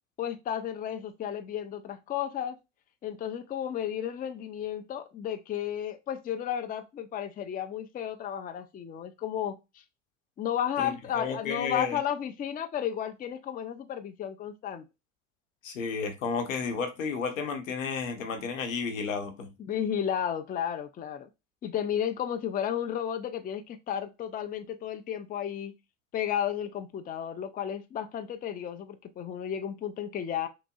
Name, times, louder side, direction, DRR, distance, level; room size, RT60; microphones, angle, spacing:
voice 1, 0.2-2.6 3.0-9.5 10.4-14.8 19.6-21.3 21.6-25.7 26.1-30.5, left 9 dB, 25° left, 0.5 m, -33 dB
voice 2, 10.8-12.0 15.6-19.5, left 5 dB, 85° left, 0.9 m, -32 dB
5.8 x 2.0 x 2.3 m
hypercardioid pair, 75°, 38 cm